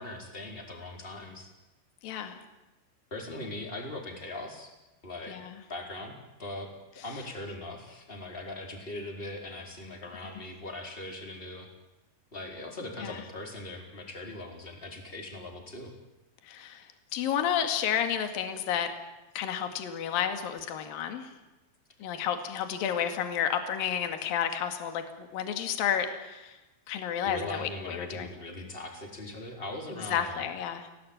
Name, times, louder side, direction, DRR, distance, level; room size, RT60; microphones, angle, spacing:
voice 1, 0.0-1.5 3.1-4.7 5.0-5.4 5.7-6.1 6.4-6.7 6.9-11.7 12.3-15.9 27.2-30.4, left 1 dB, 15° left, 2 dB, 4.1 m, -40 dB
voice 2, 2.0-2.4 5.3-5.6 10.2-10.4 13.0-13.2 16.4-18.9 19.4-21.3 22.0-26.6 26.9-28.3 30.1-30.9, left 9 dB, 60° left, 7 dB, 3.6 m, -31 dB
27.5 x 18.0 x 9.0 m, 1.1 s
omnidirectional pair, 4.9 m